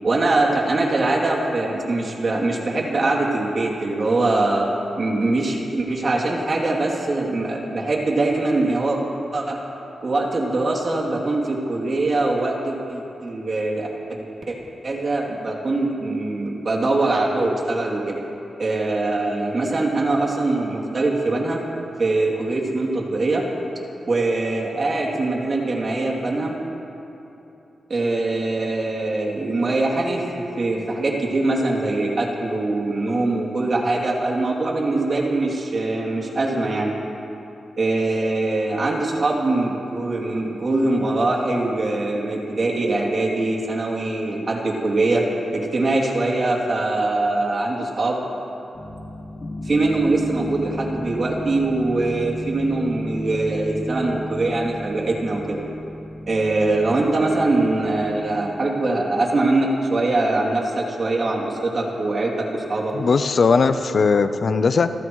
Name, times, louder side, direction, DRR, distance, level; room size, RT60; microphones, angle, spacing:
voice 1, 0.0-4.7 5.0-9.0 9.3-9.6 10.0-14.2 14.5-14.6 14.8-18.2 18.6-21.6 22.0-23.4 24.1-26.5 27.9-36.9 37.8-45.2 45.5-48.2 49.6-55.6 56.3-62.9, right 2 dB, 50° right, -2 dB, 2.9 m, -22 dB
sound 1, 48.7-58.6, left 1 dB, 35° left, 1.9 m, -34 dB
voice 2, 62.9-64.9, left 4 dB, 60° left, 10 dB, 0.7 m, -18 dB
29.5 x 14.5 x 3.2 m, 3.0 s
cardioid pair, 80°, 0 cm